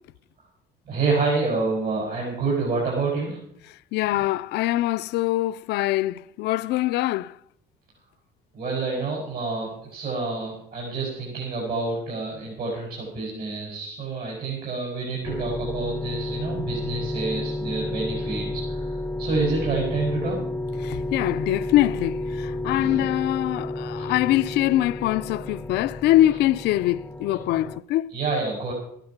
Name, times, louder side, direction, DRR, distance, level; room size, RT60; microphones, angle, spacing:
voice 1, 0.9-3.4 4.1-4.3 8.5-20.4 22.7-23.1 24.0-24.1 28.1-28.7, right 3 dB, 65° right, 6.2 m, -28 dB
voice 2, 3.9-7.3 20.8-28.1, left 15 dB, 80° left, 0.5 m, -23 dB
sound 1, 15.2-27.8, left 2 dB, 5° left, 0.5 m, -31 dB
14.5 x 12.0 x 5.9 m
cardioid pair, 110°, 17 cm